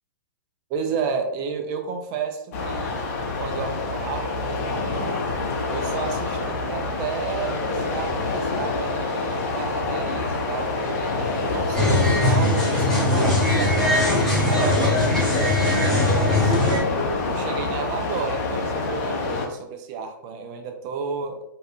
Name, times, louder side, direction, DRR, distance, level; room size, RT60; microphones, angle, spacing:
voice 1, 0.7-3.1 3.4-5.3 5.7-11.1 11.4-14.0 14.5-16.7 17.2-21.4, right 5 dB, 30° right, 5 dB, 0.4 m, -32 dB
sound 1, 2.5-19.5, left 3 dB, 40° left, 0.6 m, -27 dB
sound 2, 11.8-16.8, left 1 dB, 5° left, 0.8 m, -20 dB
2.7 x 2.3 x 2.5 m, 0.80 s
figure-of-eight pair, 120°, 12 cm